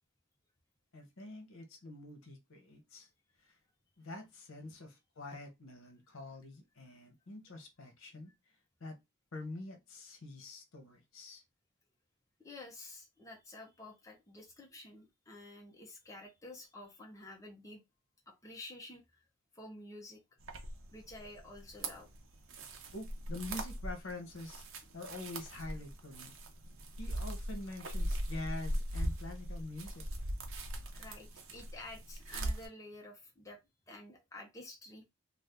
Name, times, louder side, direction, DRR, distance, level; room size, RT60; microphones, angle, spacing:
voice 1, 0.9-3.1 3.5-3.6 4.0-8.3 8.8-9.0 9.3-11.4 22.9-26.3 27.0-30.1, left 2 dB, 80° left, 0.9 m, -46 dB
voice 2, 12.4-17.8 18.3-19.2 19.5-20.2 20.9-22.1 30.9-33.6 33.9-35.0, left 2 dB, 15° left, 0.7 m, -50 dB
sound 1, 20.4-32.7, right 1 dB, 75° right, 0.7 m, -40 dB
2.6 x 2.4 x 3.4 m
head